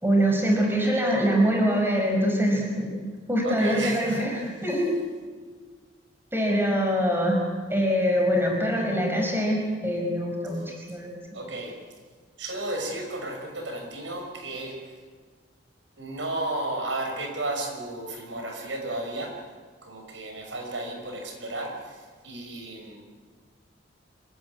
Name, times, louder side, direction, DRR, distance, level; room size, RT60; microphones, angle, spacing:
voice 1, 0.0-3.0 3.3-4.9 6.3-7.4 7.7-11.1, equal, 10° right, 1 dB, 5.3 m, -24 dB
voice 2, 3.4-4.3 10.5-10.6 11.3-11.8 12.4-14.9 16.0-19.4 19.8-23.0, right 2 dB, 80° right, 3 dB, 5.9 m, -33 dB
25.5 x 18.0 x 9.7 m, 1.5 s
head